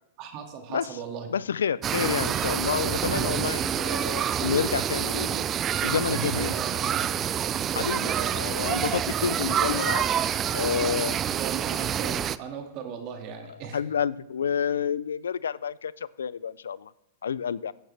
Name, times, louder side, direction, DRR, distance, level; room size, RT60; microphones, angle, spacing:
voice 1, 0.2-1.3 6.1-7.1 8.0-8.3 11.0-13.8, right 7 dB, 45° right, 5 dB, 2.0 m, -37 dB
voice 2, 1.3-5.5 5.8-6.5 7.7-10.0 10.5-11.2 13.7-16.9 17.2-17.7, left 7 dB, 90° left, 21 dB, 0.3 m, -29 dB
sound 1, 1.8-12.4, right 9 dB, 25° right, 0.4 m, -27 dB
14.5 x 8.8 x 3.3 m, 0.95 s
hypercardioid pair, 125°, 0 cm